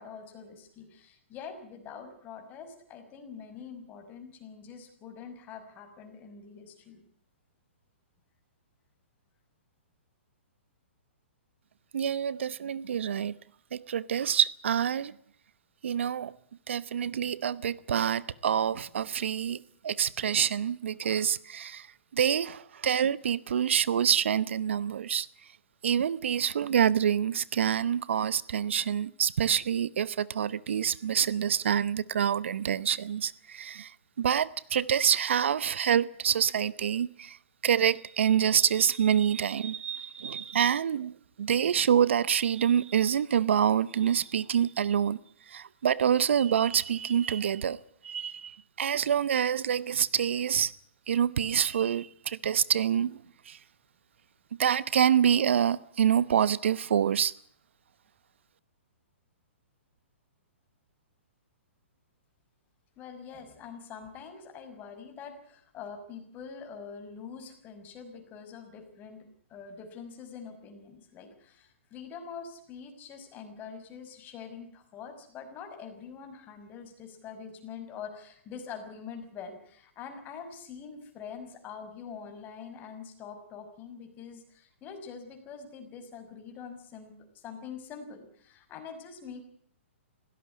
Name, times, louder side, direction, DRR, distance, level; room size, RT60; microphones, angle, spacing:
voice 1, 0.0-7.0 63.0-89.5, left 6 dB, 25° left, 5.8 m, -45 dB
voice 2, 11.9-13.4 13.7-15.1 15.8-16.3 16.7-21.9 22.1-25.3 25.8-33.9 34.2-37.4 37.6-41.1 41.4-45.2 45.5-47.8 48.0-50.7 51.1-53.6 54.6-57.3, right 8 dB, 70° right, 0.9 m, -26 dB
20.0 x 17.5 x 9.6 m
hypercardioid pair, 130°, 7 cm